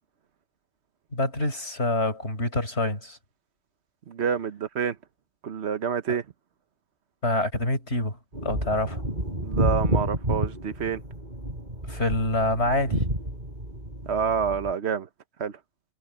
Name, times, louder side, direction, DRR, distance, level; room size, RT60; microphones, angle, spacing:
voice 1, 1.1-3.2 7.2-9.0 11.9-13.0, left 2 dB, 85° left, 6.6 m, -26 dB
voice 2, 4.1-5.0 5.4-6.2 9.4-11.0 14.1-15.1 15.4-15.5, right 7 dB, 75° right, 1.3 m, -28 dB
sound 1, 8.3-14.7, right 1 dB, 45° right, 8.3 m, -30 dB
omnidirectional pair, 1.1 m